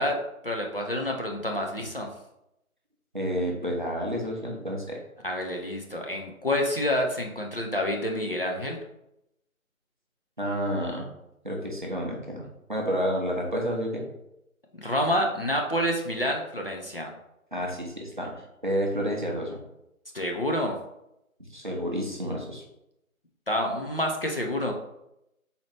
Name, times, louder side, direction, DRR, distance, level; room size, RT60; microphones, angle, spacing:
voice 1, 0.0-2.1 5.2-8.8 14.7-17.1 20.1-20.7 23.5-24.7, left 1 dB, 40° left, 0 dB, 0.5 m, -28 dB
voice 2, 3.1-5.0 10.4-11.1 11.4-14.0 17.5-18.3 18.6-19.6 21.5-22.6, equal, 35° right, -1 dB, 0.6 m, -30 dB
4.1 x 2.7 x 3.1 m, 0.84 s
figure-of-eight pair, 160°, 43 cm